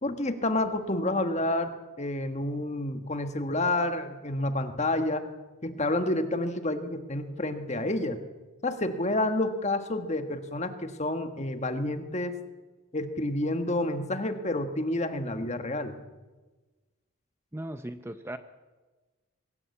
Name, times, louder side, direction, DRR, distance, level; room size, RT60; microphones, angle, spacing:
voice 1, 0.0-5.2 5.6-8.2 8.6-12.4 12.9-16.0, left 1 dB, 30° left, 7 dB, 1.5 m, -29 dB
voice 2, 17.5-18.4, right 1 dB, 10° right, 9 dB, 0.6 m, -37 dB
23.5 x 14.0 x 8.3 m, 1.2 s
head